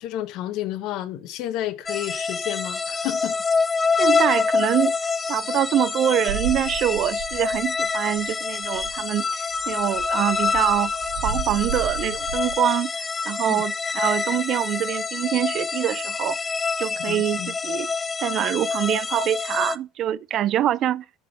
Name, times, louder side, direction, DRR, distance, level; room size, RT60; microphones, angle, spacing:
voice 1, 0.0-3.4 13.5-13.6 17.1-17.5, left 13 dB, 60° left, 1.1 m, -31 dB
sound 1, 1.9-19.8, left 5 dB, 20° left, 0.5 m, -26 dB
voice 2, 4.0-4.9 5.3-10.9 11.2-16.4 16.8-17.9 18.2-21.0, right 11 dB, 45° right, 0.4 m, -24 dB
sound 2, 6.2-7.9 8.2-8.3 8.5-9.0 9.5-12.6, right 7 dB, 80° right, 1.7 m, -33 dB
8.3 x 3.8 x 6.8 m
cardioid pair, 130°, 0 cm